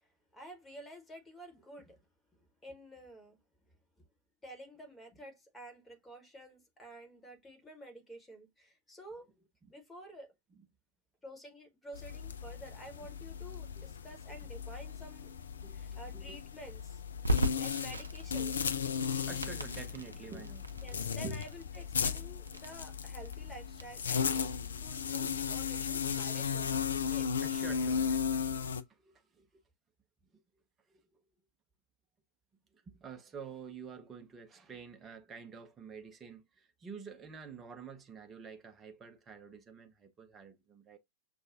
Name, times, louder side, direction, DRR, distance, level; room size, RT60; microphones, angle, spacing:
voice 1, 0.3-2.0 2.3-3.4 4.4-9.3 9.7-10.3 11.2-15.3 15.7-17.0 17.5-18.7 20.8-24.4 24.8-27.3, right 1 dB, 10° left, 1.3 m, -51 dB
sound 1, 11.9-28.8, left 7 dB, 70° left, 0.3 m, -36 dB
voice 2, 15.6-16.4 19.2-21.4 27.4-28.6 28.9-29.5 30.3-30.4 30.9-31.2 32.7-41.0, right 6 dB, 20° right, 0.6 m, -49 dB
Crackle, 17.2-28.0, right 1 dB, 80° right, 0.5 m, -39 dB
6.3 x 2.3 x 2.4 m
figure-of-eight pair, 90°, 0 cm